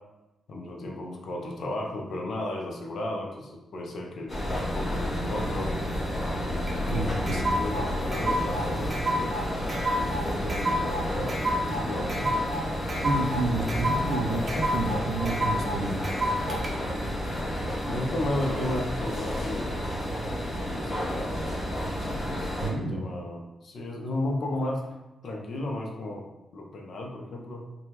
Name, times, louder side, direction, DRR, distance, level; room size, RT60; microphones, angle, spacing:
voice 1, 0.5-5.7 6.9-9.4 10.0-11.3 11.6-12.3 17.8-20.1 20.5-21.4 22.6-24.9 25.2-26.3 26.5-27.7, left 1 dB, 60° left, 1 dB, 0.5 m, -34 dB
sound 1, 4.3-22.7, equal, 35° left, 0.9 m, -31 dB
sound 2, 6.7-16.7, equal, 30° right, 0.6 m, -30 dB
voice 2, 6.9-7.4 13.0-16.1 22.6-23.0, right 2 dB, 80° right, 4 dB, 0.4 m, -30 dB
3.4 x 2.2 x 2.9 m, 1.0 s
cardioid pair, 120°, 0 cm